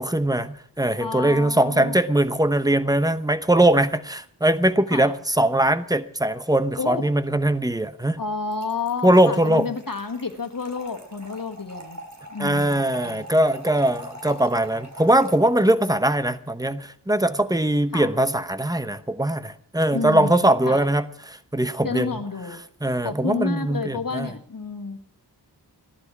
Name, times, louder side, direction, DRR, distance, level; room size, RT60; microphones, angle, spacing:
voice 1, 0.0-8.2 9.0-9.7 12.4-21.1 21.5-22.1 22.8-24.3, right 1 dB, 10° right, 12 dB, 0.9 m, -21 dB
voice 2, 1.0-2.0 4.9-5.2 6.8-7.1 8.2-12.0 12.3-13.2 17.9-18.1 19.9-20.9 21.8-22.6 23.0-25.2, left 4 dB, 50° left, 6 dB, 1.8 m, -30 dB
Trickle dribble / Fill (with liquid), 8.5-15.9, right 1 dB, 40° right, 3.1 m, -43 dB
15.5 x 11.5 x 6.1 m, 0.62 s
wide cardioid pair, 50°, 42 cm